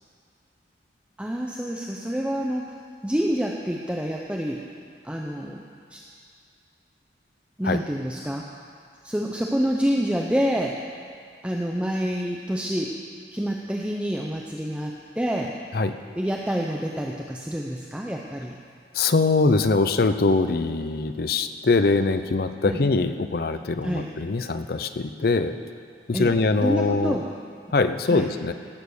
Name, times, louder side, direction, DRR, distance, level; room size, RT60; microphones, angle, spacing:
voice 1, 1.2-2.7 3.0-4.6 5.0-6.0 7.6-8.5 9.0-10.8 11.4-12.9 13.3-15.5 16.2-18.6 22.6-22.8 23.8-24.1 26.1-27.3 28.1-28.3, equal, 5° right, -1 dB, 0.6 m, -27 dB
voice 2, 18.9-25.6 26.1-27.2 27.7-28.5, left 3 dB, 55° left, 10 dB, 0.5 m, -22 dB
17.5 x 7.3 x 6.6 m, 2.2 s
head